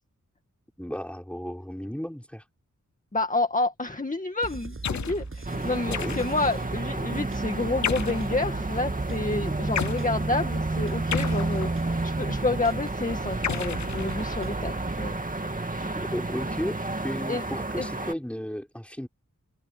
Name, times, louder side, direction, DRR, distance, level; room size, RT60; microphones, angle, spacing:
voice 1, 0.8-2.4 5.5-6.2 15.9-16.8 17.0-19.1, equal, 5° left, 4.9 m, -34 dB
voice 2, 3.1-11.7 12.0-15.2 17.3-17.4 17.8-17.9, left 2 dB, 25° left, 2.1 m, -29 dB
sound 1, 4.4-15.1, right 3 dB, 40° right, 7.4 m, -38 dB
sound 2, 4.8-5.2 5.9-6.5 7.8-8.3 9.8-10.0 11.1-12.0 13.4-14.5, left 8 dB, 65° left, 0.6 m, -32 dB
sound 3, 5.4-18.1, right 2 dB, 25° right, 2.4 m, -31 dB
wide cardioid pair, 75°, 31 cm